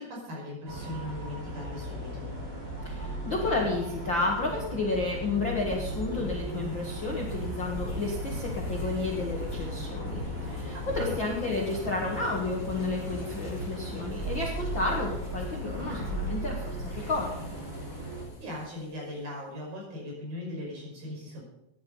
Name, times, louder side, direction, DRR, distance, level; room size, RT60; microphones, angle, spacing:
voice 1, 0.0-2.3 11.0-11.1 18.4-21.4, left 1 dB, 50° right, -2 dB, 7.3 m, -39 dB
sound 1, 0.7-18.2, right 1 dB, 20° right, 3.0 m, -37 dB
voice 2, 2.8-17.5, left 3 dB, 85° left, -1 dB, 1.0 m, -31 dB
sound 2, 5.7-19.0, equal, 35° left, 4.2 m, -42 dB
16.5 x 10.0 x 5.5 m, 0.87 s
omnidirectional pair, 5.3 m